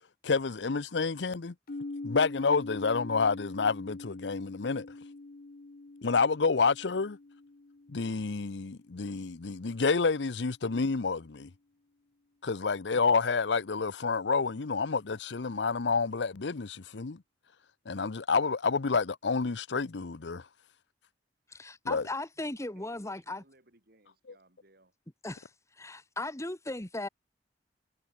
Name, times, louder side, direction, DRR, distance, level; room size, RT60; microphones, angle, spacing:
voice 1, 0.2-1.5 2.0-4.9 6.0-7.2 7.9-11.5 12.4-17.2 17.9-20.4 21.8-22.0, left 4 dB, 85° left, 0.8 m, -29 dB
sound 1, 1.7-9.5, left 2 dB, 55° left, 0.8 m, -44 dB
voice 2, 21.5-23.4 25.2-25.5 25.8-27.1, left 2 dB, 15° left, 1.5 m, -37 dB
voice 3, 22.7-24.9, right 2 dB, 60° right, 6.1 m, -63 dB
head